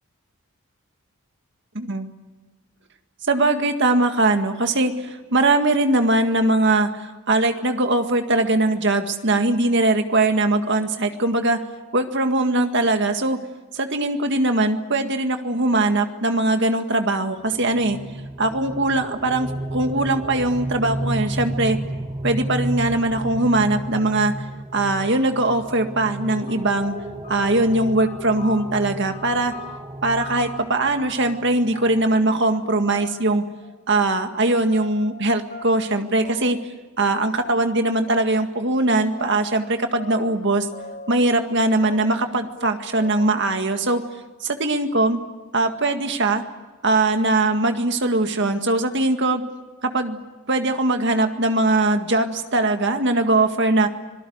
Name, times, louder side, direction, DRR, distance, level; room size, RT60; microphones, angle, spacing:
voice 1, 3.2-11.6 11.9-13.4 13.7-18.0 18.4-21.8 22.2-24.3 24.7-26.9 27.3-29.5 30.0-33.4 33.9-40.7 41.1-44.0 44.4-45.2 45.5-46.4 46.8-49.4 49.8-50.2 50.5-53.9, right 2 dB, 55° right, 6 dB, 1.9 m, -21 dB
sound 1, 17.4-32.1, right 1 dB, 20° right, 0.9 m, -32 dB
sound 2, 26.5-27.7 28.0-28.9 29.1-30.6 31.0-31.5 31.7-32.6 32.9-33.4 33.6-34.4 34.7-35.2 35.5-35.9 36.2-36.7 37.0-37.1 37.4-37.6 38.1-38.6 38.8-40.4 40.7-41.6 41.8-42.3 42.6-42.7 43.0-43.5, left 4 dB, 40° left, 4.1 m, -41 dB
26.0 x 18.5 x 9.5 m, 1.3 s
head